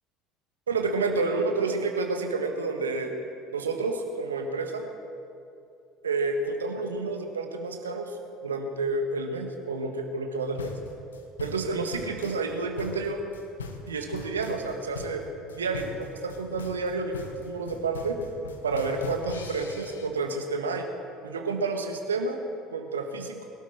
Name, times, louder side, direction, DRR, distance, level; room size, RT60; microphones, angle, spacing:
voice 1, 0.7-3.1 3.5-4.9 6.0-8.1 8.4-10.7 11.4-13.2 13.9-15.2 15.6-18.2 18.6-20.9 21.2-22.4 22.7-23.4, right 3 dB, 80° right, 4 dB, 1.4 m, -29 dB
sound 1, 10.6-20.1, left 4 dB, 80° left, 1.2 m, -41 dB
22.5 x 12.5 x 4.5 m, 2.6 s
figure-of-eight pair, 65°, 0 cm